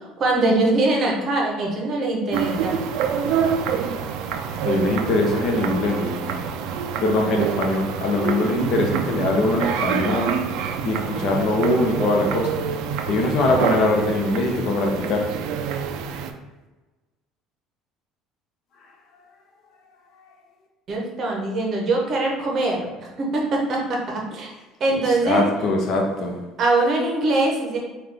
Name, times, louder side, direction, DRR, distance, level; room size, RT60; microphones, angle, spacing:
voice 1, 0.2-2.7 20.9-24.5 24.8-25.5 26.6-27.8, right 2 dB, 40° right, -1 dB, 0.8 m, -22 dB
sound 1, 2.3-16.3, right 7 dB, 70° right, 0.3 m, -26 dB
voice 2, 4.6-6.4 7.0-10.4 10.8-12.6 13.1-15.4 25.2-26.4, left 2 dB, 50° left, 1 dB, 0.7 m, -22 dB
3.7 x 2.3 x 3.3 m, 1.2 s
cardioid pair, 140°, 0 cm